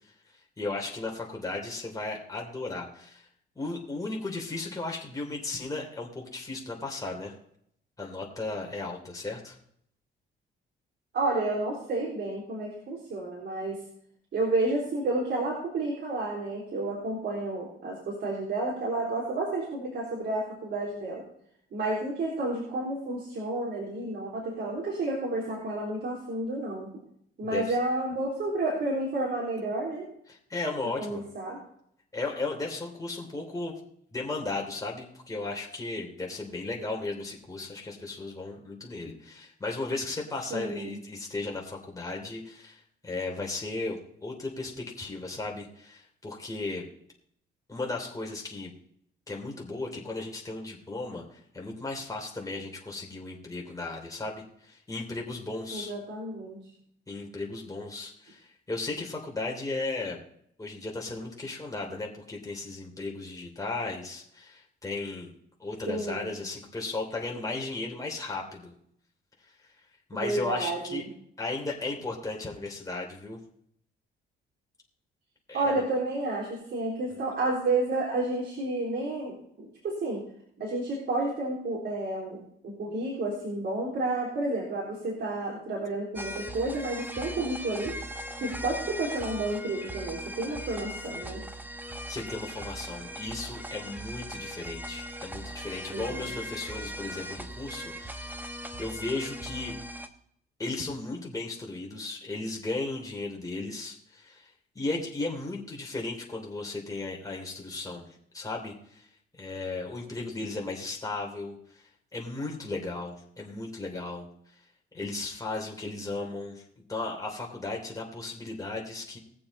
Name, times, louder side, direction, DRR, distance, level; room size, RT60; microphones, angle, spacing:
voice 1, 0.3-3.3 3.5-7.3 8.0-9.6 27.4-27.8 30.3-31.2 32.1-33.7 34.1-46.8 47.7-48.7 49.3-55.9 57.1-60.2 60.6-65.3 65.6-68.7 70.1-71.0 71.4-73.4 75.5-75.8 92.1-98.5 98.8-99.7 100.6-108.1 108.3-109.1 109.3-114.3 114.9-116.6 116.9-119.2, left 2 dB, 15° left, -1 dB, 3.1 m, -35 dB
voice 2, 11.1-13.8 14.3-21.2 21.7-26.9 27.4-30.1 31.0-31.6 40.5-41.0 55.7-56.6 65.9-66.3 70.1-71.1 75.5-80.2 80.6-87.9 88.4-91.4 95.9-96.2, right 2 dB, 60° right, -4 dB, 3.8 m, -31 dB
sound 1, 86.2-100.1, equal, 10° right, 1.2 m, -39 dB
20.0 x 7.0 x 4.3 m, 0.69 s
cardioid pair, 90°, 20 cm